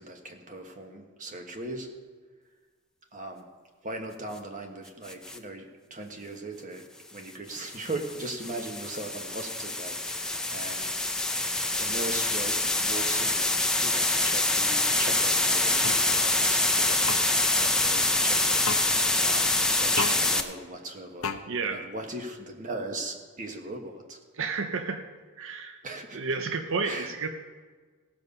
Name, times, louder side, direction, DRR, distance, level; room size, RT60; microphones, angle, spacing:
voice 1, 0.0-1.9 3.1-3.4 3.8-10.9 11.8-17.2 17.5-21.3 21.7-24.2 25.8-26.2 26.8-27.1, right 2 dB, 35° right, 3 dB, 1.3 m, -39 dB
sound 1, 5.1-5.4 7.5-20.4, left 2 dB, 5° left, 0.6 m, -26 dB
sound 2, 15.8-16.0 17.1-17.2 18.6-18.8 20.0-20.2 21.2-21.4, left 4 dB, 80° left, 0.8 m, -30 dB
voice 2, 21.5-21.8 24.4-25.1 25.4-25.8 26.1-27.3, right 4 dB, 60° right, 7 dB, 0.7 m, -31 dB
17.0 x 7.0 x 5.4 m, 1.5 s
head